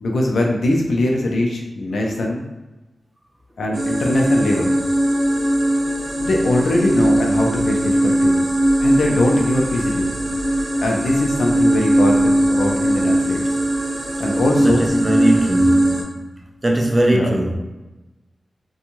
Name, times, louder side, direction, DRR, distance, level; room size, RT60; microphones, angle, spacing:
voice 1, 0.0-2.4 3.6-4.7 6.2-8.4 8.8-10.1 10.8-13.4 14.2-14.9 17.1-17.3, left 1 dB, 80° left, 1 dB, 0.5 m, -21 dB
sound 1, 3.7-16.0, right 1 dB, 75° right, 0.6 m, -19 dB
voice 2, 14.6-16.2 16.6-17.5, right 1 dB, 20° right, 1 dB, 0.3 m, -20 dB
2.6 x 2.3 x 2.9 m, 1.1 s
wide cardioid pair, 150°, 0 cm